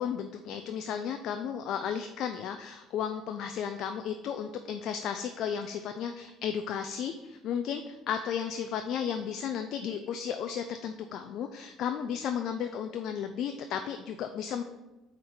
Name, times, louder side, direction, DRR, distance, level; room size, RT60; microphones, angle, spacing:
voice 1, 0.0-14.6, left 8 dB, 65° left, 7 dB, 0.4 m, -34 dB
4.8 x 4.4 x 5.6 m, 1.0 s
hypercardioid pair, 70°, 0 cm